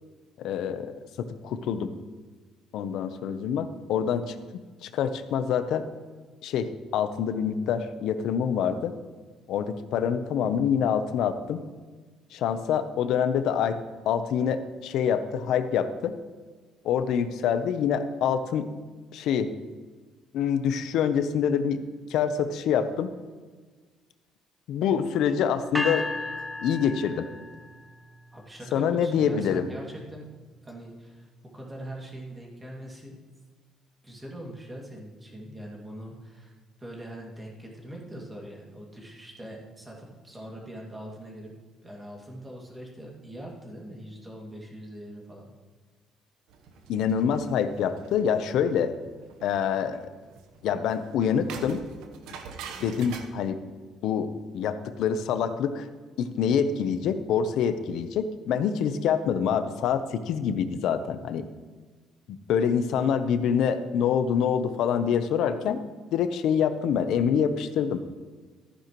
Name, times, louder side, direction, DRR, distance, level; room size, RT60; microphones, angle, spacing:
voice 1, 0.4-0.9 1.2-1.9 2.7-5.9 6.4-8.9 9.5-11.6 12.3-13.8 14.1-16.1 16.8-18.7 19.1-19.5 20.3-21.8 22.1-23.1 24.7-26.1 26.6-27.3 28.7-29.7 46.9-48.9 49.4-50.0 50.6-51.8 52.8-53.6 54.0-55.9 56.2-61.5 62.3-65.8 66.1-68.0, left 7 dB, 70° left, 10 dB, 0.8 m, -26 dB
sound 1, 25.7-27.8, left 2 dB, ahead, 0.8 m, -33 dB
voice 2, 28.3-30.3 30.6-31.3 31.5-33.2 34.0-36.5 36.8-41.5 41.8-45.5, right 1 dB, 15° right, -2 dB, 2.3 m, -42 dB
sound 2, 46.5-53.3, right 6 dB, 85° right, 1.0 m, -45 dB
14.0 x 9.9 x 3.1 m, 1.4 s
cardioid pair, 135°, 0 cm